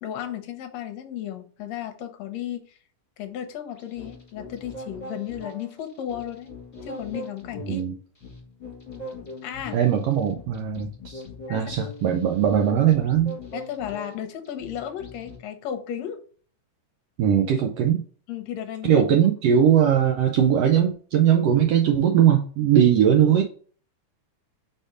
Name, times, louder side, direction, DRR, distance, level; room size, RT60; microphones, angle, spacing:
voice 1, 0.0-2.8 3.2-6.5 6.8-7.8 9.4-9.8 11.5-11.7 13.5-16.2 18.3-19.0, left 10 dB, 70° left, 7 dB, 1.8 m, -34 dB
sound 1, 3.7-15.4, left 2 dB, 20° left, 2.7 m, -41 dB
voice 2, 7.6-7.9 9.7-11.2 11.5-13.4 17.2-18.0 18.8-23.4, right 9 dB, 85° right, 3 dB, 1.4 m, -20 dB
5.1 x 4.3 x 5.0 m, 0.44 s
omnidirectional pair, 3.7 m